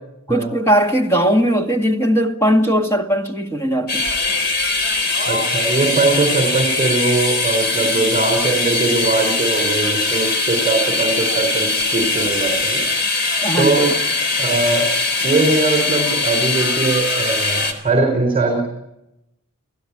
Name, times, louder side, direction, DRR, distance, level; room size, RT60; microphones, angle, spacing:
voice 1, 0.3-4.1 13.4-13.9, equal, 15° left, 2.0 m, -18 dB
sound 1, 3.9-17.7, left 3 dB, 50° left, 3.9 m, -21 dB
voice 2, 5.2-12.9 13.6-13.9 14.4-14.9 15.2-18.6, right 3 dB, 25° right, 4.9 m, -20 dB
30.0 x 16.5 x 8.7 m
head